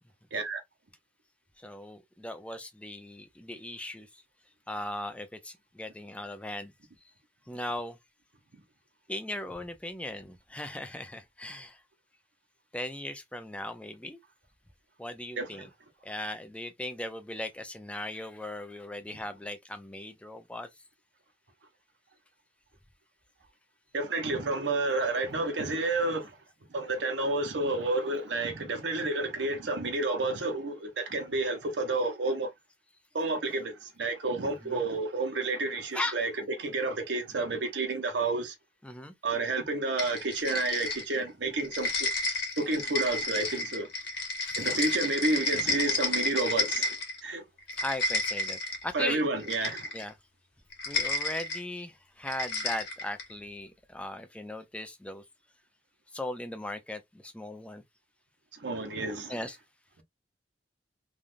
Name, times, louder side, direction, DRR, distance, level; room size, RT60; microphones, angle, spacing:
voice 1, 0.3-0.6 15.4-15.7 23.9-26.3 26.7-32.5 33.1-36.3 36.6-38.5 39.2-42.1 42.6-43.9 44.6-46.9 47.2-47.4 48.9-49.9 58.6-59.4, right 2 dB, 75° right, 0.8 m, -30 dB
voice 2, 1.6-4.2 4.7-6.7 7.0-7.1 7.5-8.0 9.1-11.8 12.7-14.2 15.0-15.7 16.0-20.7 34.6-34.8 35.9-36.2 38.8-39.1 44.5-44.6 47.8-49.2 49.9-50.1 50.9-55.2 56.1-57.8 59.3-59.6, left 1 dB, 5° left, 0.4 m, -38 dB
sound 1, 40.0-41.3 41.6-47.2 47.6-48.8 49.4-50.1 50.7-51.6 52.3-53.3, left 2 dB, 60° left, 1.3 m, -31 dB
3.4 x 2.4 x 2.5 m
head